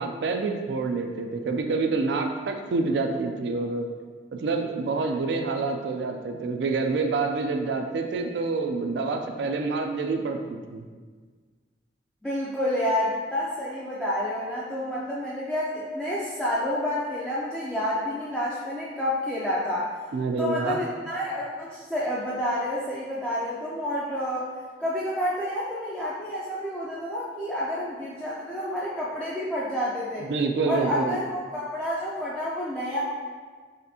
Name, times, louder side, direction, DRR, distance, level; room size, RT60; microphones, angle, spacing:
voice 1, 0.0-3.9 4.3-10.8 20.1-20.8 30.3-31.2, right 3 dB, 75° right, 5 dB, 0.3 m, -27 dB
voice 2, 12.2-19.9 20.4-24.5 24.8-30.3 30.6-33.0, left 1 dB, 5° left, -8 dB, 0.4 m, -29 dB
4.1 x 3.4 x 2.7 m, 1.5 s
head